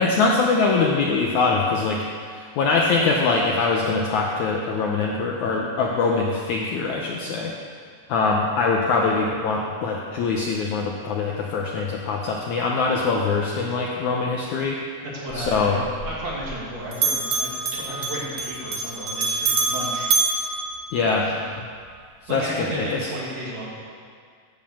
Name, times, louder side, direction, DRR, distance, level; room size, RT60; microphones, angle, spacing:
voice 1, 0.0-2.0 2.3-7.5 8.1-14.8 15.3-15.8 20.9-21.3 22.3-23.1, left 4 dB, 75° left, -1 dB, 1.8 m, -23 dB
voice 2, 15.0-20.1 21.2-21.5 22.3-23.8, equal, 50° right, -6 dB, 3.4 m, -33 dB
Bell, 15.3-16.7 16.9-21.4, right 4 dB, 75° right, 1.1 m, -26 dB
14.5 x 5.4 x 7.1 m, 2.1 s
omnidirectional pair, 4.2 m